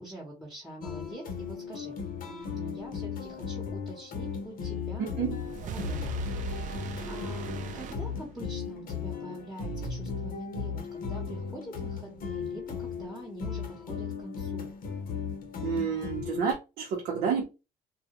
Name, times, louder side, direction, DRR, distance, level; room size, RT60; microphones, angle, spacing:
voice 1, 0.0-1.9 2.2-5.2 5.6-14.7, right 1 dB, ahead, 0.9 m, -45 dB
sound 1, 0.8-16.5, left 6 dB, 55° left, 0.7 m, -36 dB
sound 2, 5.0-8.7, right 7 dB, 50° right, 0.4 m, -39 dB
voice 2, 5.0-5.4 15.6-17.4, right 7 dB, 80° right, 0.7 m, -30 dB
2.3 x 2.1 x 2.9 m
cardioid pair, 110°, 17 cm